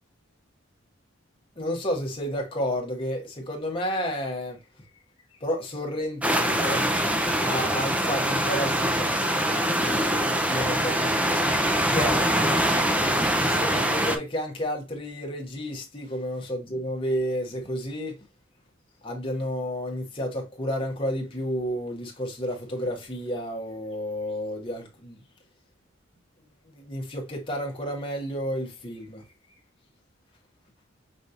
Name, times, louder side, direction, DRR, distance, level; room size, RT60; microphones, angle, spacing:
voice 1, 1.6-4.6 5.4-6.9 7.4-9.4 10.2-11.4 11.9-12.3 13.4-18.2 19.0-25.2 26.8-29.2, equal, 25° left, 1.3 m, -31 dB
sound 1, 6.2-14.2, right 1 dB, 5° right, 0.5 m, -24 dB
5.4 x 3.2 x 2.5 m
head